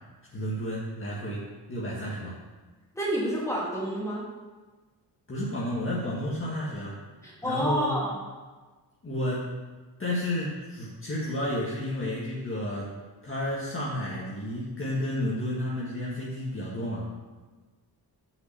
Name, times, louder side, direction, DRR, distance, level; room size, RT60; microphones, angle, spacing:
voice 1, 0.3-1.4 1.7-2.3 5.3-7.0 7.4-7.9 9.0-9.6 10.0-12.9 13.2-17.1, left 1 dB, 30° left, -7 dB, 1.7 m, -31 dB
voice 2, 2.9-4.3 7.2-8.2, equal, 5° left, -6 dB, 2.6 m, -29 dB
5.9 x 5.6 x 6.9 m, 1.3 s
cardioid pair, 100°, 40 cm